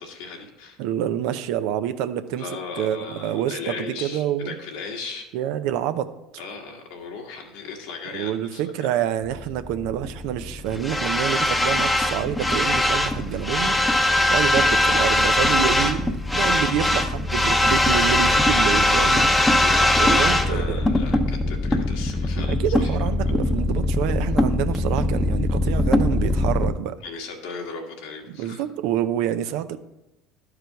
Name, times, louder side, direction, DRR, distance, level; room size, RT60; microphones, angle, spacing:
voice 1, 0.0-0.8 2.4-5.3 6.4-8.6 14.1-14.5 15.2-15.3 19.6-23.0 27.0-28.6, left 4 dB, 80° left, 1 dB, 1.6 m, -37 dB
voice 2, 0.8-2.4 2.8-4.6 5.3-6.1 8.1-19.5 20.0-20.8 22.3-27.0 28.3-29.8, right 10 dB, 75° right, 11 dB, 0.6 m, -27 dB
sound 1, 9.2-26.7, left 1 dB, 10° left, 0.8 m, -21 dB
11.5 x 4.9 x 4.6 m, 0.95 s
supercardioid pair, 90°, 0 cm